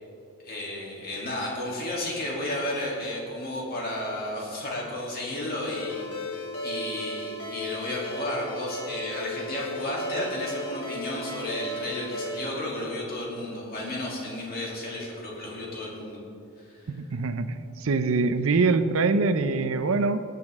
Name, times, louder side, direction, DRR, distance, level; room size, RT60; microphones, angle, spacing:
voice 1, 0.4-16.2 16.7-16.9, left 1 dB, 45° left, -4 dB, 2.9 m, -33 dB
Ringtone, 5.7-12.6, equal, 85° left, 2.2 m, -35 dB
voice 2, 16.9-20.2, right 3 dB, 70° right, 11 dB, 0.6 m, -24 dB
18.0 x 8.5 x 3.6 m, 2.6 s
head